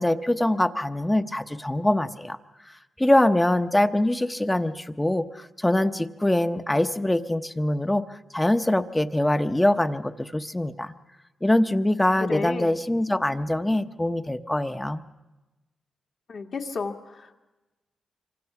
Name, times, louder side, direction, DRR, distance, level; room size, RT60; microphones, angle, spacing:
voice 1, 0.0-2.4 3.0-10.9 11.4-15.0, left 1 dB, 10° left, 10 dB, 0.8 m, -23 dB
voice 2, 12.2-12.7 16.3-17.4, left 4 dB, 55° left, 2 dB, 1.7 m, -32 dB
26.0 x 25.0 x 5.9 m, 1.1 s
wide cardioid pair, 115°, 0 cm